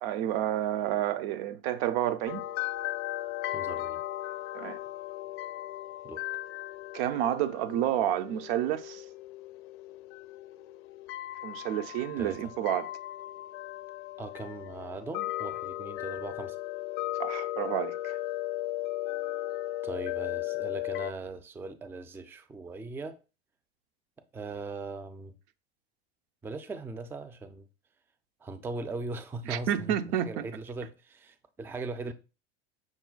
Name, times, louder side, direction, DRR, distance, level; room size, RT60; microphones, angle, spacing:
voice 1, 0.0-2.4 4.5-4.8 6.9-9.0 11.4-12.9 17.2-18.2 29.5-30.4, right 11 dB, 65° right, 0.6 m, -30 dB
sound 1, 2.3-21.1, left 15 dB, 65° left, 0.5 m, -36 dB
voice 2, 3.4-4.0 6.0-6.2 12.2-12.4 14.2-16.6 19.8-23.2 24.3-25.3 26.4-27.6 28.4-32.1, right 3 dB, 5° right, 0.4 m, -39 dB
6.1 x 2.2 x 3.9 m
hypercardioid pair, 90°, 32 cm